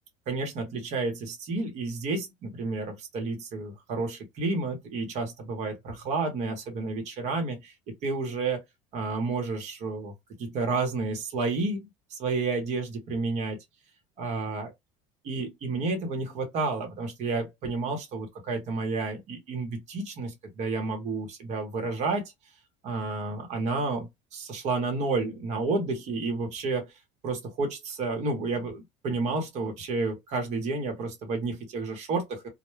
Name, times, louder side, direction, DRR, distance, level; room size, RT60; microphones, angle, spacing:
voice 1, 0.3-7.7 8.0-8.6 8.9-10.1 10.4-11.8 12.1-13.6 14.2-14.7 15.2-22.3 22.8-26.9 27.2-32.5, right 3 dB, 45° right, 0.9 m, -30 dB
2.2 x 2.1 x 3.1 m
cardioid pair, 140°, 16 cm